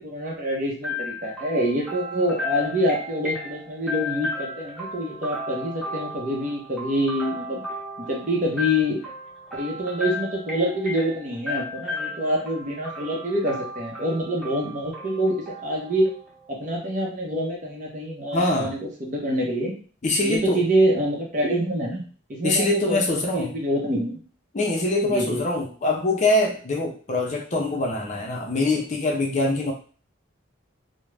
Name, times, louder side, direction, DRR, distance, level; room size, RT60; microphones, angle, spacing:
voice 1, 0.0-7.6 8.0-9.0 9.6-16.1 16.5-19.7 20.2-22.0 22.3-24.2 25.0-25.4, equal, 40° right, -2 dB, 0.7 m, -26 dB
sound 1, 0.8-16.6, left 2 dB, ahead, 0.7 m, -35 dB
voice 2, 18.3-18.7 20.0-20.6 22.4-23.5 24.5-29.7, left 2 dB, 35° left, 0 dB, 0.5 m, -23 dB
2.4 x 2.1 x 3.2 m, 0.40 s
head